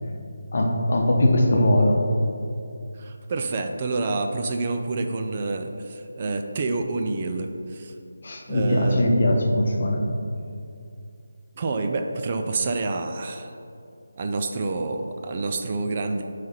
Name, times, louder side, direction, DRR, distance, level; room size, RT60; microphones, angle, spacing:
voice 1, 0.5-2.0 8.2-10.0, left 1 dB, 50° left, 1 dB, 0.9 m, -20 dB
voice 2, 3.0-7.9 8.5-9.1 11.6-13.5 14.2-16.2, right 3 dB, 35° right, 4 dB, 0.4 m, -28 dB
9.3 x 3.3 x 4.3 m, 2.5 s
figure-of-eight pair, 160°, 0 cm